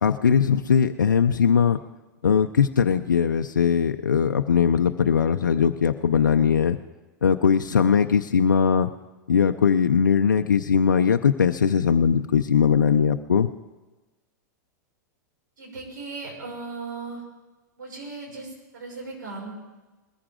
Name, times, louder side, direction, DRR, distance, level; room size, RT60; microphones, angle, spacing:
voice 1, 0.0-1.8 2.2-6.8 7.2-8.9 9.3-13.5, left 7 dB, 90° left, 7 dB, 0.5 m, -20 dB
voice 2, 15.6-17.2 17.8-19.5, right 3 dB, 80° right, -1 dB, 6.1 m, -37 dB
20.5 x 14.0 x 3.8 m, 1.2 s
hypercardioid pair, 105°, 10 cm